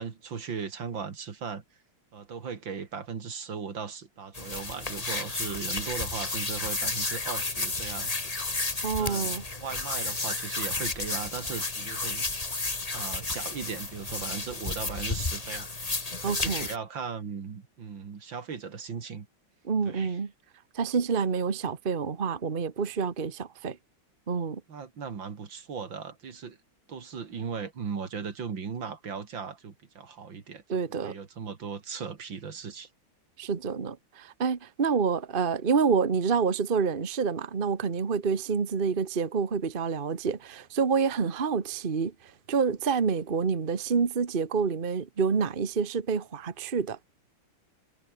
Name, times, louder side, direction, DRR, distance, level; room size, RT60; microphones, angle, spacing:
voice 1, 0.0-1.6 2.1-8.1 9.0-12.2 12.9-15.7 16.2-19.3 19.8-20.2 24.7-26.6 26.9-32.9, right 6 dB, 70° right, 3.1 m, -38 dB
sound 1, 4.3-16.8, left 3 dB, 20° left, 1.8 m, -32 dB
voice 2, 8.8-9.4 16.2-16.7 19.6-20.3 20.7-23.8 24.3-24.6 30.7-31.2 33.4-47.0, right 5 dB, 30° right, 1.3 m, -28 dB
omnidirectional pair, 2.1 m